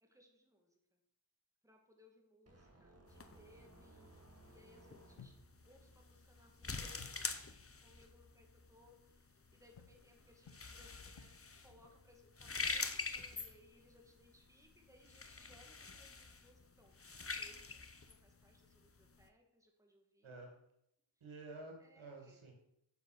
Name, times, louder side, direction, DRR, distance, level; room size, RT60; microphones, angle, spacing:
voice 1, 0.0-0.7 1.6-5.4 5.6-7.0 7.8-11.3 11.6-17.0 17.2-20.4 21.8-22.5, left 1 dB, 5° right, 1 dB, 2.3 m, -66 dB
sound 1, 2.5-5.6, right 2 dB, 30° right, 1.7 m, -63 dB
sound 2, 3.1-19.3, left 4 dB, 30° left, 0.9 m, -46 dB
sound 3, 5.2-5.8 7.0-7.4 9.8-11.6, left 6 dB, 80° left, 1.0 m, -59 dB
voice 2, 21.2-22.5, right 2 dB, 90° right, 2 dB, 2.3 m, -51 dB
7.1 x 7.0 x 6.5 m, 0.79 s
cardioid pair, 55°, 47 cm